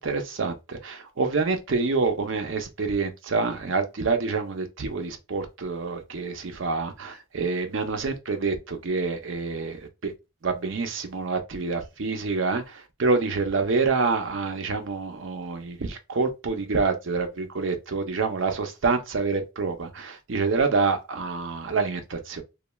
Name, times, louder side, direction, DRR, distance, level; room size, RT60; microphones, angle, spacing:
voice 1, 0.0-10.1 10.4-22.4, right 4 dB, 65° right, 0.6 m, -27 dB
3.1 x 2.3 x 2.2 m
head